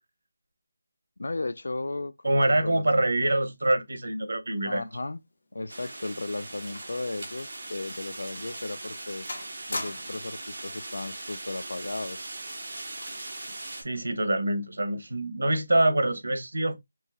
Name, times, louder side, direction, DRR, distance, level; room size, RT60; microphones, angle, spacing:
voice 1, 1.2-2.9 4.6-5.2 5.5-9.3 9.7-12.3, left 2 dB, 75° left, 0.4 m, -35 dB
voice 2, 2.2-4.8 13.8-16.8, right 1 dB, 75° right, 0.9 m, -25 dB
sound 1, 5.0-7.1 7.4-7.6 8.2-8.3 8.8-9.0 9.3-10.3 11.3-11.6, left 2 dB, 50° left, 1.0 m, -40 dB
sound 2, 5.7-13.8, right 2 dB, 35° right, 1.3 m, -40 dB
4.6 x 2.8 x 2.2 m
figure-of-eight pair, 180°, 0 cm